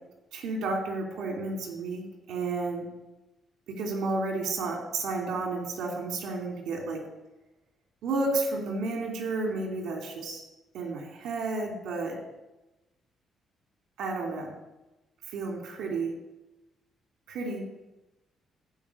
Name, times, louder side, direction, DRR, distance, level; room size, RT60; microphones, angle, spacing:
voice 1, 0.3-2.9 3.7-7.0 8.0-10.4 10.7-12.2 14.0-14.5 15.3-16.1 17.3-17.6, right 3 dB, 80° right, 2 dB, 3.3 m, -31 dB
14.5 x 5.8 x 8.6 m, 1.0 s
cardioid pair, 90°, 0 cm